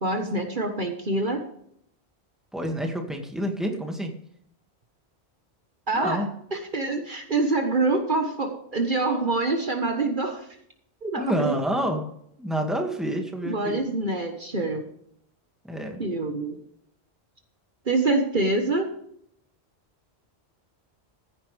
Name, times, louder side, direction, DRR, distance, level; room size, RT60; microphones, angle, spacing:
voice 1, 0.0-1.4 5.9-6.2 6.5-10.5 11.0-11.5 13.4-14.8 16.0-16.6 17.8-18.9, right 2 dB, 50° right, 4 dB, 1.5 m, -25 dB
voice 2, 2.5-4.1 5.9-6.3 11.1-12.0 12.4-13.8 15.6-16.0, equal, ahead, 2 dB, 2.0 m, -28 dB
15.0 x 10.5 x 3.4 m, 0.69 s
omnidirectional pair, 1.1 m